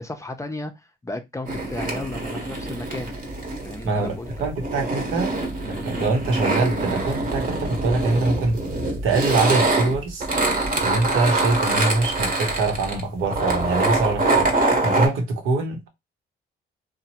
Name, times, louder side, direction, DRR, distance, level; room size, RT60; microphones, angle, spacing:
voice 1, 0.0-3.2 3.6-4.3, left 2 dB, 15° left, 0.5 m, -34 dB
sound 1, 1.5-15.1, right 2 dB, 40° right, 1.1 m, -24 dB
voice 2, 4.4-5.3 5.7-8.6 9.0-10.3 10.8-15.9, right 3 dB, 90° right, 0.9 m, -24 dB
3.0 x 2.1 x 2.8 m
cardioid pair, 90°, 20 cm